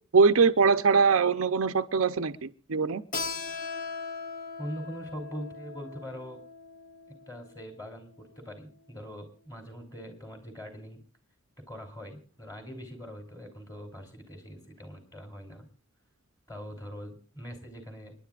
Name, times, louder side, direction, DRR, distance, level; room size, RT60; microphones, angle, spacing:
voice 1, 0.1-3.0, right 5 dB, 70° right, 9 dB, 0.6 m, -22 dB
Keyboard (musical), 3.1-8.4, left 4 dB, 35° left, 1.2 m, -39 dB
voice 2, 4.6-6.4 7.1-11.0 11.7-15.6 16.5-18.1, equal, 15° left, 4 dB, 3.1 m, -42 dB
28.5 x 10.5 x 2.4 m, 0.40 s
head